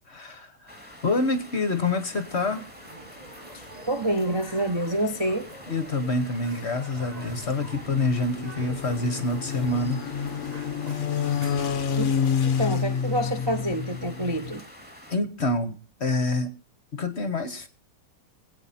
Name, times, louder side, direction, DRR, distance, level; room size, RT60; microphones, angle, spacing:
voice 1, 0.1-2.7 5.7-10.0 10.4-10.5 15.1-16.5 16.9-17.7, left 2 dB, 40° left, 1.0 m, -27 dB
sound 1, 0.7-15.1, equal, 5° right, 2.0 m, -47 dB
sound 2, 2.2-12.7, right 2 dB, 20° right, 1.1 m, -46 dB
voice 2, 3.5-5.5 12.0-12.1 12.4-14.6, right 1 dB, 45° right, 0.3 m, -27 dB
sound 3, 7.0-14.6, left 7 dB, 60° left, 0.7 m, -29 dB
21.5 x 9.0 x 4.3 m
omnidirectional pair, 2.4 m